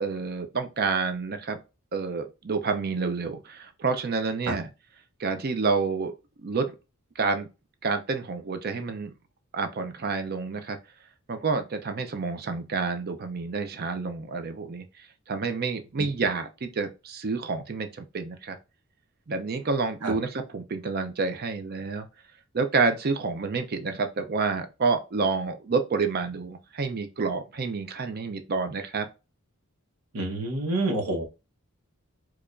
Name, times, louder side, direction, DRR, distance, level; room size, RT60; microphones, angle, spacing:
voice 1, 0.0-1.6 1.9-4.7 5.2-6.1 6.4-6.7 7.2-7.5 7.8-9.1 9.5-10.8 11.3-18.6 19.3-22.1 22.5-29.1, right 4 dB, 45° right, 0.5 m, -29 dB
voice 2, 30.1-31.2, right 2 dB, 90° right, 1.0 m, -27 dB
4.7 x 2.3 x 2.4 m
head